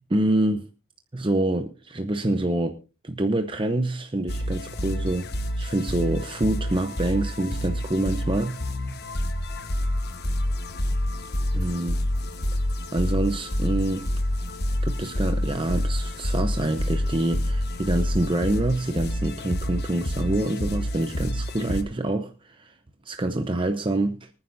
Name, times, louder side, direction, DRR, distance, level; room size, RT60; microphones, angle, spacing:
voice 1, 0.1-0.7 1.1-2.8 3.0-8.6 11.5-12.0 12.9-14.0 14.8-22.7 23.0-24.3, right 1 dB, 25° right, 0.7 m, -26 dB
sound 1, 4.3-21.8, left 1 dB, 50° left, 1.2 m, -28 dB
25.0 x 9.6 x 2.6 m
head